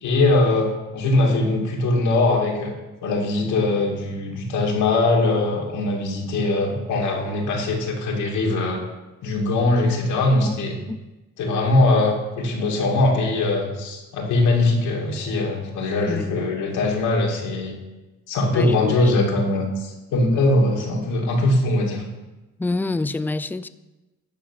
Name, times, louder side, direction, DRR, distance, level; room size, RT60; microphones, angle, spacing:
voice 1, 0.0-2.7 3.0-8.8 9.2-10.8 11.4-17.8 18.3-22.0, left 2 dB, 85° left, -1 dB, 2.5 m, -21 dB
voice 2, 18.5-19.0 22.6-23.7, left 2 dB, 5° left, 13 dB, 0.4 m, -26 dB
12.0 x 4.6 x 8.3 m, 1.1 s
cardioid pair, 90°, 30 cm